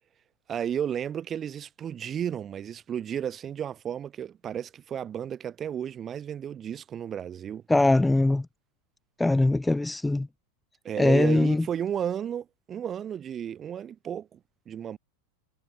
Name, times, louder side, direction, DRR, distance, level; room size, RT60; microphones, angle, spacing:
voice 1, 0.5-7.6 10.8-14.4 14.7-15.0, right 9 dB, 30° right, 5.8 m, -33 dB
voice 2, 7.7-8.4 9.2-10.3 11.0-11.6, left 2 dB, 5° left, 1.1 m, -21 dB
hypercardioid pair, 100°, 0 cm